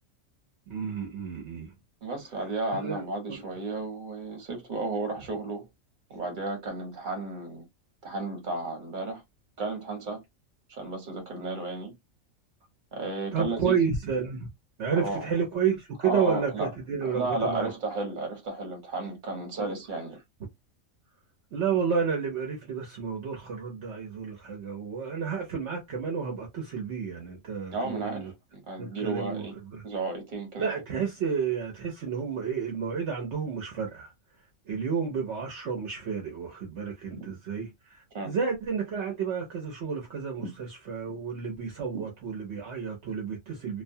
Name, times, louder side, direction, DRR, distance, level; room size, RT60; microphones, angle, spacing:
voice 1, 0.7-1.7 2.7-3.4 13.3-14.5 14.8-17.7 19.6-19.8 21.5-28.3 28.8-29.4 29.7-29.8 30.6-34.1 34.7-43.8, right 6 dB, 60° right, 1.0 m, -31 dB
voice 2, 2.0-5.7 6.1-7.6 8.0-9.2 9.6-10.2 10.8-12.0 12.9-13.7 15.0-15.3 16.0-16.7 17.0-20.2 27.7-29.5 29.8-30.7 37.1-37.3 38.1-38.3 40.4-40.5 41.9-42.0, right 3 dB, 40° right, 1.1 m, -33 dB
2.5 x 2.2 x 2.6 m
omnidirectional pair, 1.4 m